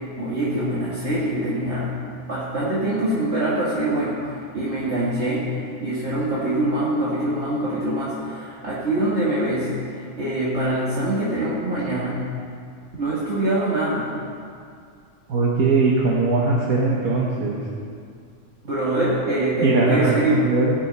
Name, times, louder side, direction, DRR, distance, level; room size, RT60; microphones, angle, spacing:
voice 1, 0.2-1.9 2.3-12.2 13.0-14.1 18.6-20.4, right 1 dB, 50° right, -9 dB, 2.2 m, -24 dB
voice 2, 15.3-17.6 19.6-20.7, right 3 dB, 85° right, -3 dB, 1.6 m, -20 dB
18.0 x 6.2 x 5.5 m, 2.3 s
omnidirectional pair, 1.4 m